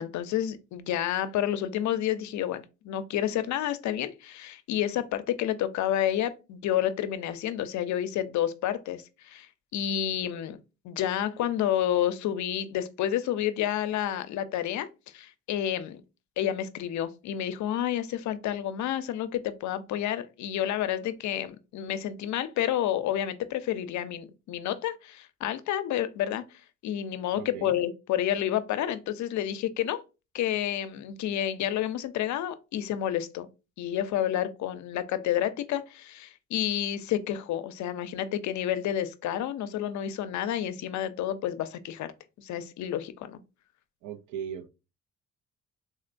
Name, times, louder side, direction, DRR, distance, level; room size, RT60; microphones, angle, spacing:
voice 1, 0.0-10.6 10.8-14.9 15.1-16.0 16.4-26.4 26.8-30.0 30.3-33.5 33.8-42.1 42.4-43.4, left 11 dB, 70° left, 0.5 m, -30 dB
voice 2, 27.3-27.8 44.0-44.7, right 8 dB, 90° right, 0.5 m, -38 dB
3.8 x 2.1 x 2.5 m
cardioid pair, 90°, 30 cm